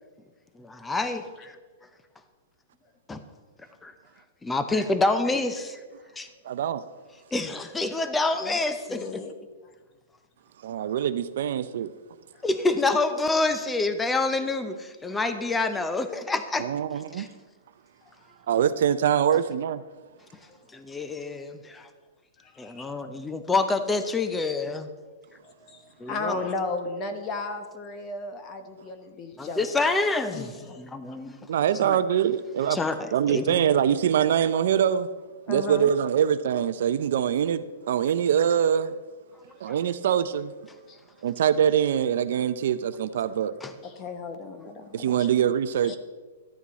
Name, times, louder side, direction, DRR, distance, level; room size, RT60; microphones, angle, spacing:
voice 1, 0.6-1.6 3.1-3.2 3.8-3.9 4.4-5.8 6.2-6.3 7.3-9.1 12.4-16.7 17.1-17.3 20.7-21.9 22.6-24.9 26.0-26.5 29.4-30.5 30.8-31.5 31.8-32.0 32.7-33.6 39.7-39.8 43.6-43.7, left 3 dB, 10° left, 0.6 m, -27 dB
voice 2, 6.4-6.8 10.6-11.9 16.6-17.3 18.5-19.8 31.5-32.8 33.1-35.1 35.5-39.0 39.6-40.5 41.2-43.5 44.9-46.0, right 9 dB, 60° right, 0.5 m, -24 dB
voice 3, 8.9-9.3 12.3-12.4 20.5-20.6 22.4-22.9 25.4-29.7 30.3-31.2 35.5-35.9 40.9-41.0 43.8-45.3 45.9-46.0, left 3 dB, 25° left, 0.9 m, -35 dB
12.5 x 8.7 x 4.1 m
hypercardioid pair, 155°, 0 cm